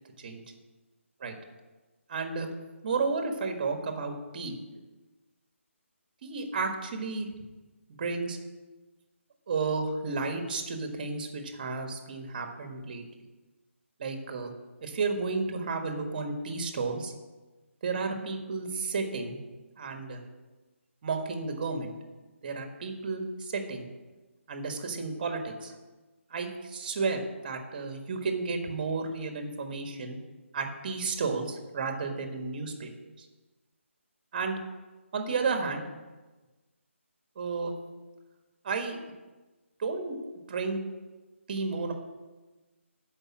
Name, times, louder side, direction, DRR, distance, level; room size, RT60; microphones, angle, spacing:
voice 1, 2.1-2.5 2.8-4.5 6.2-7.3 8.0-8.4 9.5-13.0 14.0-14.5 14.8-17.1 17.8-19.4 19.8-20.2 21.0-21.9 22.4-23.9 24.5-25.7 26.3-30.2 30.5-33.3 34.3-34.6 35.1-35.8 37.3-37.7 38.6-39.0 39.8-40.2 40.5-40.8 41.5-41.9, right 4 dB, 40° right, 5 dB, 1.6 m, -32 dB
12.5 x 5.5 x 7.4 m, 1.2 s
figure-of-eight pair, 150°, 7 cm